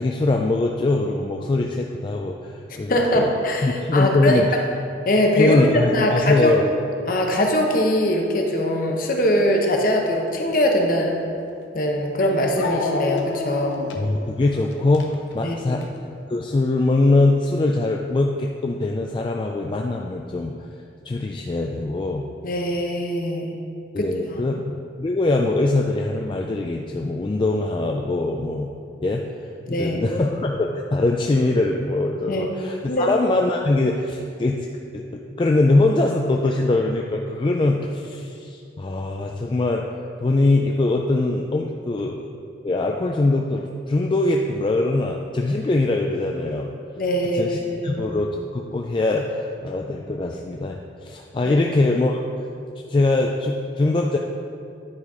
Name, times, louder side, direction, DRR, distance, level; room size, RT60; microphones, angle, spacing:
voice 1, 0.0-3.3 3.6-4.5 5.4-6.6 14.0-15.8 16.3-20.5 21.0-22.3 23.9-28.7 29.0-34.7 34.9-39.9 40.2-42.3 42.6-46.7 47.3-52.2 52.9-54.2, left 2 dB, 25° left, 1 dB, 0.3 m, -22 dB
voice 2, 2.9-4.4 5.1-6.5 7.1-11.2 11.7-13.8 15.4-15.8 22.4-23.6 24.0-24.4 29.7-30.0 32.3-32.5 32.9-33.1 47.0-48.0 51.4-51.5, left 1 dB, 50° left, 1 dB, 0.9 m, -22 dB
Dog, 11.5-11.6 12.6-16.0, left 3 dB, 90° left, 0.7 m, -30 dB
9.8 x 4.1 x 4.8 m, 2.5 s
head